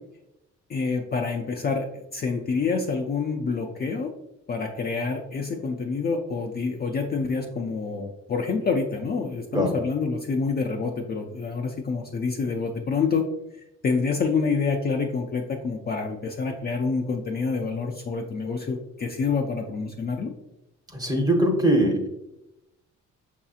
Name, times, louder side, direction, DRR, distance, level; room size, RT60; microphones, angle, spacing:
voice 1, 0.7-1.9 2.1-4.1 4.5-13.2 13.8-20.3, left 4 dB, 35° left, 2 dB, 0.4 m, -27 dB
voice 2, 20.9-22.1, right 1 dB, 10° right, 2 dB, 0.8 m, -21 dB
5.3 x 2.7 x 2.4 m, 0.88 s
cardioid pair, 90°, 30 cm